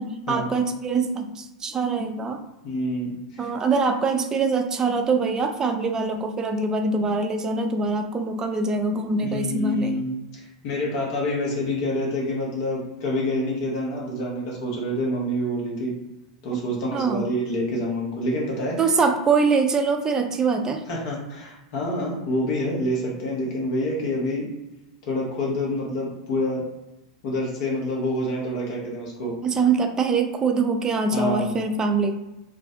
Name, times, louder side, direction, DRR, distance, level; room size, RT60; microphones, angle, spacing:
voice 1, 0.0-2.4 3.4-10.0 16.5-16.6 16.9-17.3 18.8-20.8 29.4-32.2, right 4 dB, 20° right, 5 dB, 0.3 m, -23 dB
voice 2, 2.6-3.5 9.2-10.2 10.6-15.9 16.4-18.9 20.9-24.4 25.0-26.6 27.2-29.3 31.1-31.6, left 1 dB, 50° left, -3 dB, 0.8 m, -27 dB
2.3 x 2.0 x 2.6 m, 0.98 s
figure-of-eight pair, 90°, 3 cm